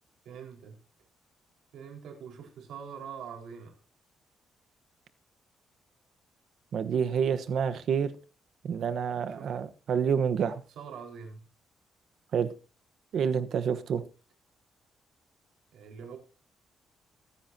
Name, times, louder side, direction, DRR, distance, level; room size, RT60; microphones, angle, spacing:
voice 1, 0.2-0.8 1.7-3.8 9.3-9.5 10.4-11.5 15.7-16.2, right 7 dB, 75° right, 4.8 m, -44 dB
voice 2, 6.7-8.1 8.6-10.6 12.3-12.5 13.1-14.0, right 7 dB, 55° right, 1.1 m, -28 dB
24.0 x 9.8 x 2.8 m
cardioid pair, 175°, 0 cm